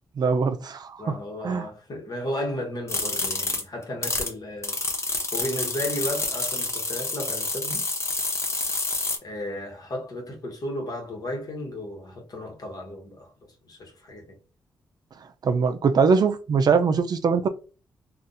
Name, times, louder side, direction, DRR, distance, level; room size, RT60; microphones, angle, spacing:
voice 1, 0.2-1.2 1.4-1.7 15.4-17.5, right 5 dB, 55° right, 0.4 m, -22 dB
voice 2, 1.0-4.8 5.1-7.9 9.0-14.4, left 1 dB, 50° left, 1.2 m, -34 dB
sound 1, 2.9-4.3 4.6-9.2, left 3 dB, 35° left, 0.7 m, -28 dB
3.9 x 2.4 x 2.5 m
cardioid pair, 90°, 8 cm